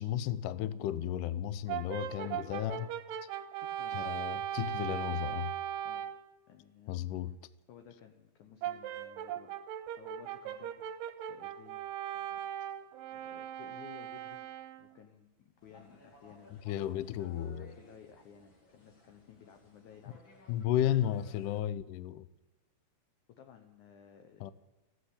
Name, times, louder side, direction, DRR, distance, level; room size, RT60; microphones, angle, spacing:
voice 1, 0.0-2.9 3.9-5.5 6.9-7.3 16.7-17.7 20.5-22.3 24.4-24.5, left 11 dB, 85° left, 1.8 m, -33 dB
Brass instrument, 1.7-6.3 8.6-15.0, right 10 dB, 75° right, 2.1 m, -39 dB
voice 2, 2.2-2.6 3.6-4.1 5.8-6.1 6.5-7.0 7.7-9.5 9.9-11.8 12.1-12.4 13.1-14.4 14.8-16.7 17.6-20.4 20.7-21.5 23.3-24.5, left 8 dB, 65° left, 2.1 m, -56 dB
sound 1, 15.6-21.6, left 2 dB, 40° left, 2.2 m, -60 dB
15.0 x 9.8 x 8.6 m
omnidirectional pair, 4.6 m